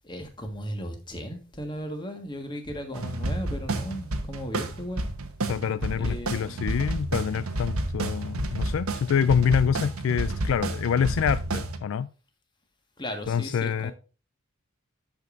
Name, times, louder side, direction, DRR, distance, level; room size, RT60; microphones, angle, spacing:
voice 1, 0.0-5.0 5.9-6.7 13.0-13.9, equal, 20° left, 1.5 m, -36 dB
sound 1, 2.9-11.8, right 2 dB, 90° right, 1.1 m, -30 dB
voice 2, 5.5-12.1 13.3-13.9, left 7 dB, 65° left, 0.3 m, -26 dB
12.0 x 5.2 x 2.5 m
head